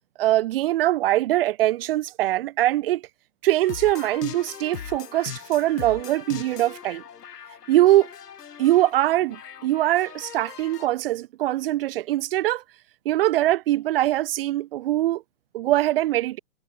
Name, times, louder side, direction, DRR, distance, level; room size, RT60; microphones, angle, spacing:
voice 1, 0.2-3.0 3.4-7.0 7.7-8.1 8.6-12.6 13.1-15.2 15.5-16.4, right 15 dB, 40° right, 2.1 m, -22 dB
sound 1, 3.6-10.9, left 8 dB, 85° left, 4.9 m, -40 dB
hypercardioid pair, 165°, 46 cm